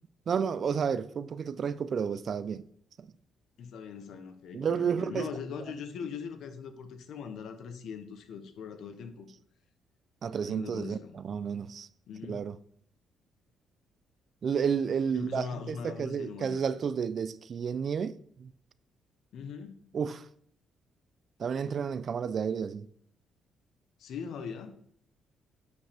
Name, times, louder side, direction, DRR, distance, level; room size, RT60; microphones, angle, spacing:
voice 1, 0.3-2.6 3.0-3.1 4.5-5.3 10.2-11.9 12.3-12.6 14.4-18.5 19.9-20.3 21.4-22.9, right 6 dB, 50° right, 0.4 m, -31 dB
voice 2, 3.6-9.3 10.4-11.2 12.1-12.4 15.1-16.6 19.3-19.9 24.0-24.8, left 6 dB, 75° left, 0.9 m, -41 dB
8.0 x 5.1 x 3.4 m
cardioid pair, 90°, 0 cm